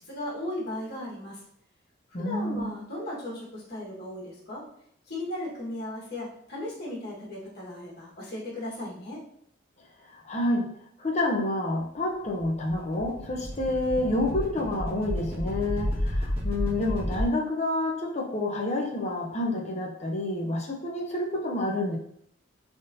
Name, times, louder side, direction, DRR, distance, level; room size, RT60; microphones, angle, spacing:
voice 1, 0.0-1.4 2.2-4.7 5.1-9.2, left 1 dB, 55° left, -6 dB, 1.6 m, -36 dB
voice 2, 2.1-2.7 10.1-10.7 11.0-22.0, left 1 dB, 35° left, 0 dB, 0.6 m, -28 dB
sound 1, 12.2-17.2, left 1 dB, 30° right, 1.3 m, -31 dB
4.0 x 3.5 x 2.7 m, 0.69 s
head